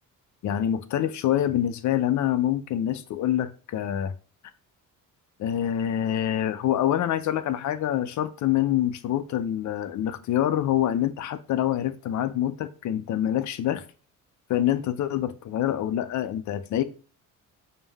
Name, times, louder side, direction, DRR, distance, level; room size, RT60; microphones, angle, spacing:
voice 1, 0.4-4.1 5.4-13.8 14.5-16.8, left 11 dB, 60° left, 0.5 m, -26 dB
5.4 x 2.1 x 3.4 m
cardioid pair, 95°, 34 cm